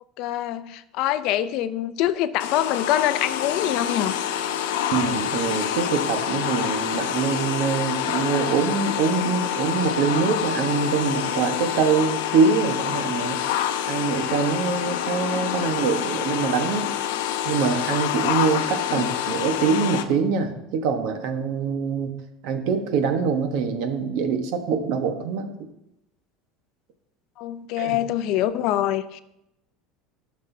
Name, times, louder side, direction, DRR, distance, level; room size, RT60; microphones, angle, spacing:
voice 1, 0.2-4.2 18.9-19.1 27.4-29.2, left 12 dB, 45° left, 12 dB, 0.5 m, -25 dB
sound 1, 2.4-20.0, left 10 dB, 90° left, 0.7 m, -27 dB
voice 2, 4.9-13.4 13.9-16.9 17.4-22.1 22.4-25.5 27.8-28.0, right 5 dB, 55° right, 6 dB, 1.1 m, -24 dB
14.5 x 6.4 x 2.7 m, 0.85 s
cardioid pair, 175°, 0 cm